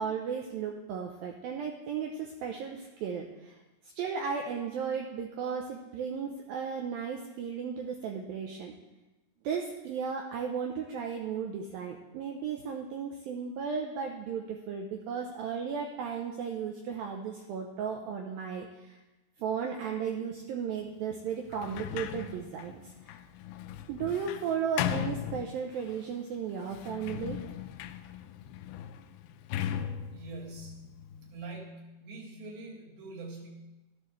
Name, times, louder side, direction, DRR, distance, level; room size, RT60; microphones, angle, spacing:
voice 1, 0.0-3.6 3.8-8.7 9.4-19.0 19.4-23.2 23.9-27.4, right 6 dB, 85° right, 1 dB, 2.1 m, -35 dB
Sliding door, 21.5-26.0 26.6-31.5, left 10 dB, 85° left, 2.3 m, -38 dB
voice 2, 30.1-30.8 31.2-33.5, right 3 dB, 70° right, -3 dB, 4.0 m, -44 dB
13.5 x 12.0 x 3.2 m, 1.1 s
omnidirectional pair, 5.1 m